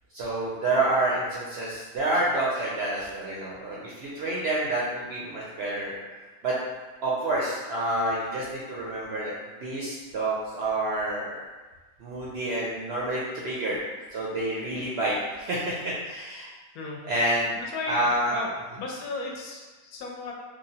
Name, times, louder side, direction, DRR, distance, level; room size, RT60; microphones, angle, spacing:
voice 1, 0.1-5.9 6.4-6.6 7.0-9.3 9.6-11.4 12.0-13.8 14.1-16.5 17.0-17.5 17.8-18.4, right 1 dB, 65° right, -6 dB, 0.6 m, -28 dB
voice 2, 17.6-18.5 18.8-20.3, left 3 dB, 85° left, -1 dB, 1.1 m, -35 dB
3.1 x 2.3 x 2.7 m, 1.3 s
omnidirectional pair, 1.5 m